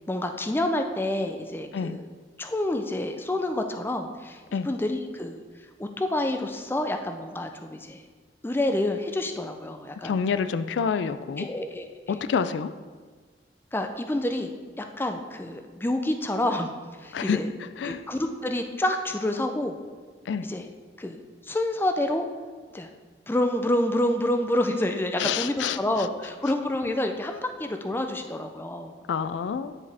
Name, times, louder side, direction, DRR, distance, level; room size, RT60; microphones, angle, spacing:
voice 1, 0.1-2.1 2.4-5.4 5.8-8.0 8.4-10.2 11.4-12.1 13.7-16.7 17.0-17.5 17.8-19.8 20.5-20.7 21.0-22.3 22.7-22.9 23.3-28.9, left 1 dB, 10° left, 5 dB, 0.4 m, -28 dB
voice 2, 10.0-11.5 12.1-12.7 17.1-17.4 17.8-18.0 20.3-20.5 25.2-25.8 29.1-29.8, left 6 dB, 85° left, 13 dB, 0.3 m, -27 dB
9.7 x 4.7 x 3.4 m, 1.5 s
head